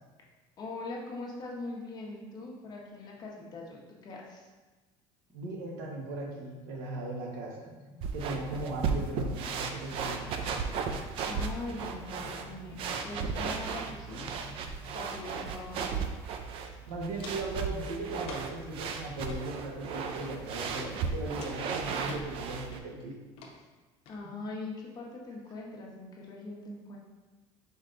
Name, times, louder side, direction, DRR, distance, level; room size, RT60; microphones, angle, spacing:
voice 1, 0.6-4.5 11.3-14.3 14.9-16.0 24.1-27.0, left 2 dB, 40° left, -2 dB, 1.0 m, -41 dB
sound 1, 5.3-15.8, left 2 dB, 10° right, 1.0 m, -53 dB
voice 2, 5.3-7.7 8.1-10.2 16.9-23.2, right 2 dB, 85° right, 0 dB, 1.0 m, -38 dB
sound 2, 8.0-22.8, right 5 dB, 55° right, 0.5 m, -35 dB
Walk footsteps, 16.3-16.4 16.6-17.6 18.2-18.6 19.1-19.4 20.1-20.4 20.8-20.9 21.4-22.2 22.7-23.0 23.4-23.5 24.1-24.2, left 4 dB, 60° left, 0.8 m, -46 dB
4.5 x 4.5 x 2.6 m, 1.3 s
cardioid pair, 125°, 11 cm